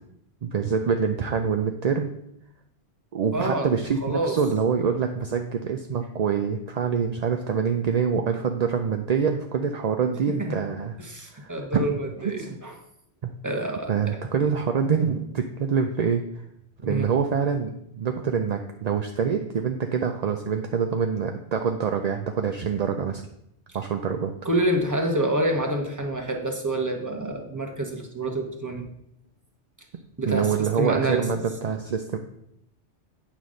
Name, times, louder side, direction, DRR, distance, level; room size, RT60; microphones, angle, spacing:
voice 1, 0.4-2.1 3.1-11.0 11.3-11.9 12.2-12.6 13.2-13.3 13.9-16.2 16.8-23.3 23.7-24.3 30.3-32.2, right 6 dB, 50° right, 5 dB, 0.5 m, -25 dB
voice 2, 3.3-3.7 4.0-4.3 10.4-10.6 11.0-12.7 13.4-14.2 16.8-17.1 24.4-28.9 30.2-30.5 30.8-31.3, right 1 dB, 15° right, 2 dB, 1.1 m, -27 dB
9.0 x 4.0 x 6.3 m, 0.78 s
omnidirectional pair, 1.2 m